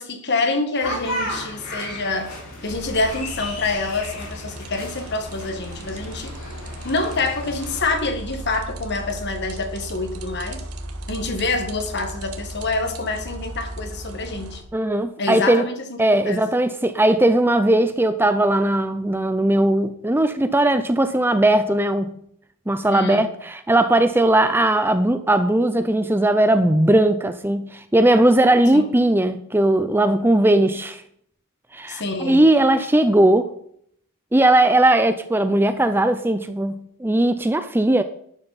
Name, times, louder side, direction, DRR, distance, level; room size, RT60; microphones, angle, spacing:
voice 1, 0.0-2.3 2.6-6.3 6.8-10.6 11.1-14.6 15.2-16.0 16.2-16.4 22.9-23.3 28.7-28.9 31.9-32.5, left 3 dB, 50° left, 1.7 m, -26 dB
sound 1, 0.8-7.9, left 1 dB, 65° left, 5.2 m, -34 dB
sound 2, 2.6-14.6, right 1 dB, 80° right, 1.7 m, -36 dB
voice 2, 14.7-15.7 16.0-22.1 22.7-31.0 31.7-33.5 34.3-38.0, right 1 dB, 10° right, 0.5 m, -18 dB
12.5 x 10.5 x 4.2 m
head